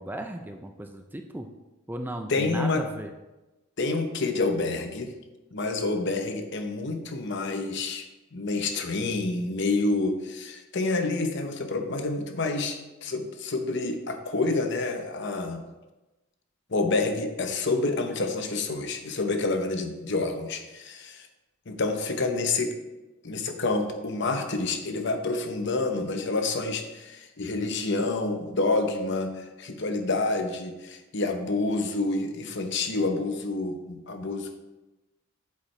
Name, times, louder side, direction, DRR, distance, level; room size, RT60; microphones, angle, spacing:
voice 1, 0.0-1.5 1.9-3.1, right 1 dB, 10° right, 5 dB, 0.4 m, -36 dB
voice 2, 2.3-2.9 3.8-5.1 5.5-8.1 8.3-15.6 16.7-21.3 21.7-22.8 23.2-34.6, left 3 dB, 55° left, 6 dB, 0.8 m, -28 dB
8.6 x 7.3 x 3.2 m, 1.1 s
head